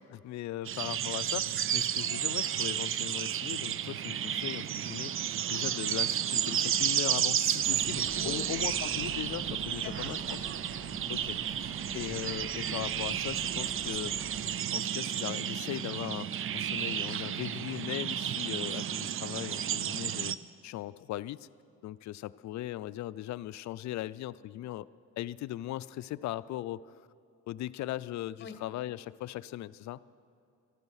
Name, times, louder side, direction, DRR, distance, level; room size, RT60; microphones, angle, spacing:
voice 1, 0.1-10.2 11.1-20.4 20.6-21.5 21.8-24.9 25.2-27.0 27.5-30.0, left 14 dB, 65° left, 16 dB, 0.4 m, -39 dB
sound 1, 0.6-20.3, right 10 dB, 45° right, 0.5 m, -32 dB
sound 2, 7.6-14.6, left 2 dB, 5° right, 1.3 m, -48 dB
voice 2, 9.8-10.5 28.4-28.6, left 6 dB, 40° left, 7 dB, 1.5 m, -44 dB
14.0 x 12.0 x 6.4 m, 2.6 s
cardioid pair, 90°, 30 cm